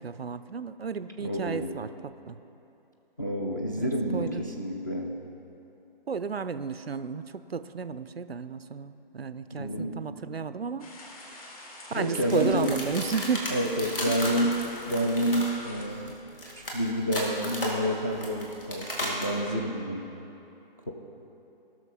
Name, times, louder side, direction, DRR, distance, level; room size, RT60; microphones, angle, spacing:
voice 1, 0.0-2.4 3.8-4.4 6.1-10.9 11.3-11.4 11.9-13.4 14.1-14.2, right 5 dB, 90° right, 12 dB, 0.5 m, -33 dB
voice 2, 1.2-1.8 3.2-5.2 9.5-10.2 11.9-12.8 13.5-14.6 14.9-16.2 16.7-20.0 20.9-21.0, equal, 20° left, -1 dB, 0.5 m, -29 dB
sound 1, 10.8-15.9, left 2 dB, 40° left, 1.5 m, -46 dB
sound 2, 12.3-19.4, equal, 65° left, 2.4 m, -35 dB
18.0 x 6.3 x 4.2 m, 2.9 s
figure-of-eight pair, 145°, 29 cm